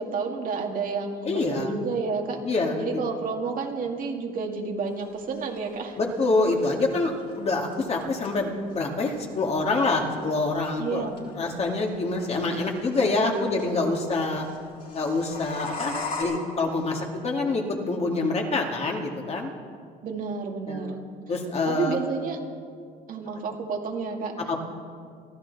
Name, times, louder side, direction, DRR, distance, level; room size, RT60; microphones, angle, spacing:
voice 1, 0.0-2.4 2.8-6.0 10.8-11.2 20.0-21.0 21.7-22.4 23.1-24.3, right 4 dB, 55° right, 2 dB, 2.2 m, -30 dB
voice 2, 1.2-1.8 2.4-3.0 6.0-11.1 11.4-14.5 14.9-19.5 20.7-20.9 21.3-22.0 24.4-24.6, left 3 dB, 40° left, 1 dB, 2.2 m, -26 dB
sound 1, 4.9-16.2, left 4 dB, 55° left, 5.0 m, -42 dB
23.0 x 14.5 x 4.1 m, 2.2 s
cardioid pair, 110°, 17 cm